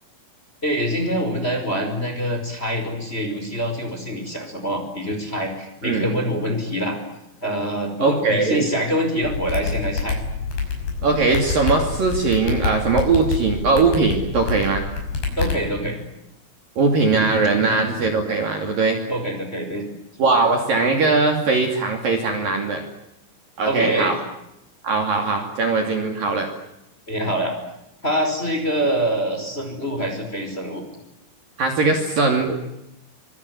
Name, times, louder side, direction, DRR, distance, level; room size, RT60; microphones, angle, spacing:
voice 1, 0.6-7.0 7.4-10.2 15.4-16.0 19.1-19.8 23.6-24.2 27.1-27.5 28.0-30.8, equal, 10° left, 5 dB, 4.8 m, -25 dB
voice 2, 8.0-8.7 11.0-14.8 16.8-19.0 20.2-22.8 23.6-24.2 24.8-26.5 31.6-32.5, right 3 dB, 50° right, 4 dB, 3.9 m, -20 dB
sound 1, 9.2-15.6, left 4 dB, 50° left, 7.6 m, -27 dB
25.0 x 23.5 x 9.7 m, 0.84 s
omnidirectional pair, 5.9 m